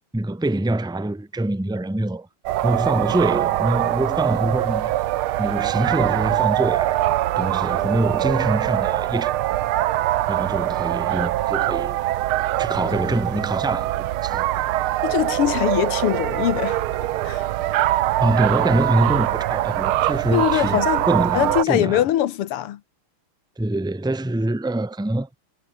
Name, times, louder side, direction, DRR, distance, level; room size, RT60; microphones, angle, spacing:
voice 1, 0.1-2.3 2.6-4.9 5.4-7.0 7.4-9.4 10.3-12.0 12.6-14.4 18.2-22.0 23.6-25.3, right 1 dB, ahead, 1.2 m, -24 dB
sound 1, 2.5-21.6, right 15 dB, 75° right, 1.6 m, -23 dB
voice 2, 15.0-16.8 17.2-17.5 20.3-21.1 21.3-22.8, left 12 dB, 90° left, 2.0 m, -22 dB
omnidirectional pair, 2.4 m